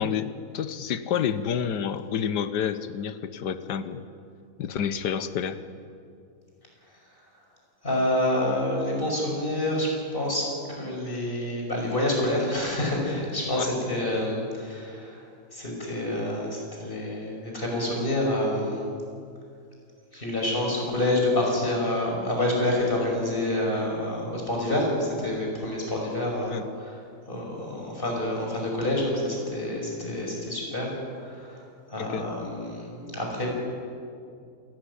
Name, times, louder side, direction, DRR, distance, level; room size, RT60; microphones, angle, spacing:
voice 1, 0.0-4.0 4.6-5.6 13.5-13.7 26.5-26.7 32.0-32.3, left 8 dB, 90° left, 11 dB, 1.6 m, -29 dB
voice 2, 7.8-10.4 10.8-15.2 15.5-18.8 20.1-27.0 27.3-30.9 31.2-31.6 31.9-33.6, left 1 dB, 30° left, -1 dB, 6.0 m, -27 dB
27.5 x 13.0 x 9.9 m, 2.4 s
omnidirectional pair, 1.8 m